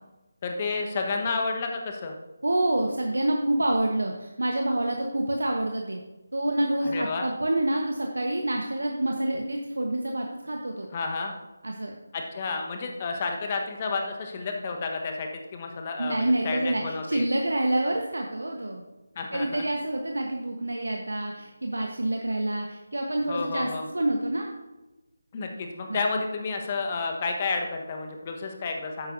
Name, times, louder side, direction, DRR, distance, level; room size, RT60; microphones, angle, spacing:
voice 1, 0.4-2.2 6.8-7.3 10.9-11.3 12.1-17.2 19.1-19.6 23.3-23.9 25.3-29.1, left 4 dB, 30° left, 3 dB, 1.2 m, -31 dB
voice 2, 2.4-6.0 6.3-10.9 11.6-11.9 16.0-18.8 19.3-24.5 25.9-26.0, right 1 dB, 70° right, 1 dB, 1.1 m, -27 dB
11.5 x 9.4 x 2.7 m, 1.1 s
figure-of-eight pair, 155°, 0 cm